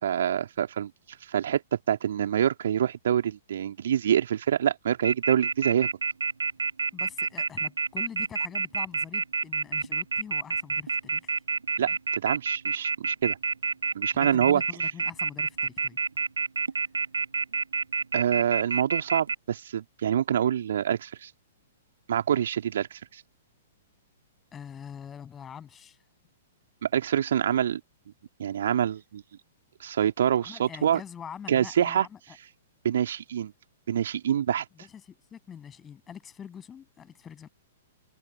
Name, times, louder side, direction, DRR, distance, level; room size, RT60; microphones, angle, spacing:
voice 1, 0.0-0.9 1.3-1.6 1.9-5.9 11.8-13.4 13.9-14.6 18.1-21.3 22.1-23.2 26.8-27.8 28.4-29.2 29.8-31.0 31.5-32.1 32.8-33.5 33.9-34.7, right 9 dB, 55° right, 2.9 m, -26 dB
Telephone, 5.0-19.3, right 4 dB, 70° right, 1.6 m, -28 dB
voice 2, 6.9-11.4 11.8-12.0 14.1-16.0 24.5-26.0 30.4-32.2 34.8-37.5, left 8 dB, 15° left, 7.8 m, -44 dB
figure-of-eight pair, 110°, 0 cm